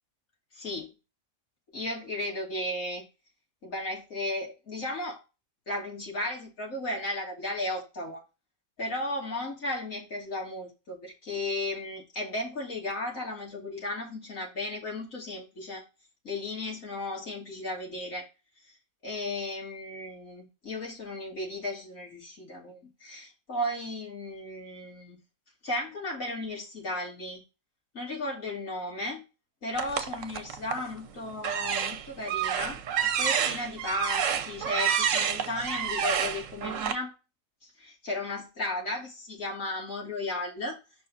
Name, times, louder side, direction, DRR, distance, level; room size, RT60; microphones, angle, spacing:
voice 1, 0.5-0.9 1.7-3.1 3.6-5.2 5.7-8.2 8.8-15.8 16.2-18.3 18.7-18.8 19.0-25.2 25.6-27.4 27.9-29.2 29.6-37.1 37.6-40.8, left 1 dB, 75° left, -3 dB, 3.2 m, -35 dB
sound 1, 29.8-30.9 31.4-36.9, right 8 dB, 65° right, 1.2 m, -29 dB
6.6 x 5.6 x 4.0 m, 0.27 s
omnidirectional pair, 1.4 m